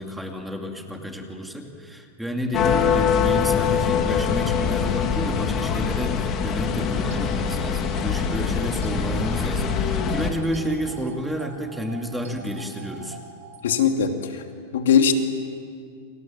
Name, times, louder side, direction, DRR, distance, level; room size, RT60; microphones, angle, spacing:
voice 1, 0.0-13.2, equal, 5° right, 3 dB, 2.4 m, -30 dB
sound 1, 2.5-10.3, left 7 dB, 30° left, 2.5 m, -23 dB
sound 2, 6.7-13.8, right 6 dB, 90° right, 3.1 m, -44 dB
voice 2, 13.6-14.4 14.7-15.1, left 7 dB, 90° left, 5 dB, 2.9 m, -20 dB
30.0 x 25.5 x 7.6 m, 2.2 s
supercardioid pair, 155°, 0 cm